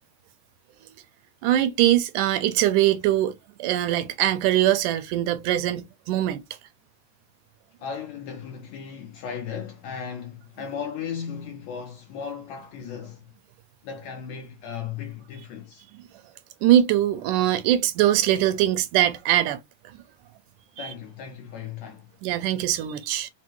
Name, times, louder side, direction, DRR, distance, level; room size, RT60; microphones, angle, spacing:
voice 1, 1.4-3.3 3.6-6.4 16.6-19.6 20.8-20.9 22.2-23.3, right 12 dB, 80° right, 2.0 m, -22 dB
voice 2, 7.8-13.3 13.8-15.9 20.8-22.2, left 7 dB, 80° left, 1.6 m, -36 dB
5.3 x 2.2 x 3.0 m
omnidirectional pair, 3.8 m